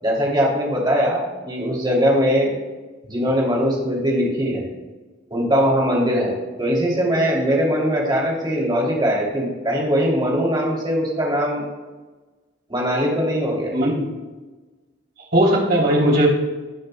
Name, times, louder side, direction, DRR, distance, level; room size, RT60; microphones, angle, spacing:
voice 1, 0.0-2.5 3.0-4.6 5.3-6.3 6.6-11.6 12.7-13.7, equal, 25° right, -3 dB, 3.0 m, -21 dB
voice 2, 13.7-14.1 15.3-16.3, right 1 dB, 55° right, -4 dB, 3.5 m, -17 dB
19.5 x 7.7 x 2.3 m, 1.3 s
head